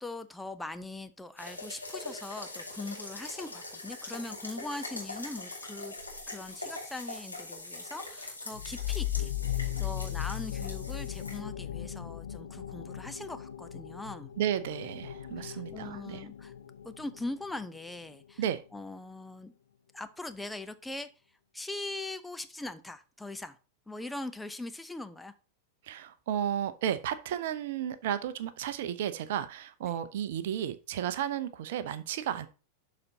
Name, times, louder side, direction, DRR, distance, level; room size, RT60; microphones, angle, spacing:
voice 1, 0.0-5.9 6.3-14.3 15.4-16.5 16.8-18.4 18.7-19.5 19.9-21.1 21.5-23.6 23.9-25.3 29.8-30.0, left 2 dB, 5° left, 0.6 m, -41 dB
sound 1, 1.4-11.4, left 2 dB, 85° left, 2.1 m, -42 dB
sound 2, 8.5-17.9, left 12 dB, 70° left, 0.7 m, -37 dB
voice 2, 14.4-16.2 18.4-18.6 25.8-32.5, right 10 dB, 55° right, 0.6 m, -33 dB
12.0 x 4.2 x 2.8 m
figure-of-eight pair, 90°, 0 cm